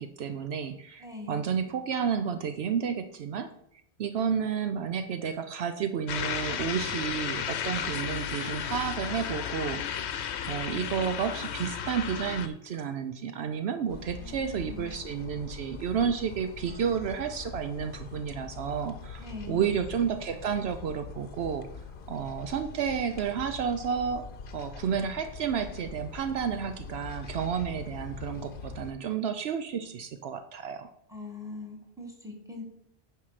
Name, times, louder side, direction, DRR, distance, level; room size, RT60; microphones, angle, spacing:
voice 1, 0.0-3.5 4.0-10.2 10.5-21.7 22.1-24.3 24.5-30.9, right 7 dB, 70° right, 8 dB, 0.9 m, -31 dB
voice 2, 1.0-1.4 14.2-14.9 19.2-19.6 31.1-32.6, left 3 dB, 5° right, 1 dB, 1.8 m, -42 dB
sound 1, 6.1-12.5, left 8 dB, 80° left, 1.0 m, -33 dB
sound 2, 13.9-28.9, left 5 dB, 55° left, 0.9 m, -43 dB
9.8 x 5.7 x 4.8 m, 0.75 s
omnidirectional pair, 1.1 m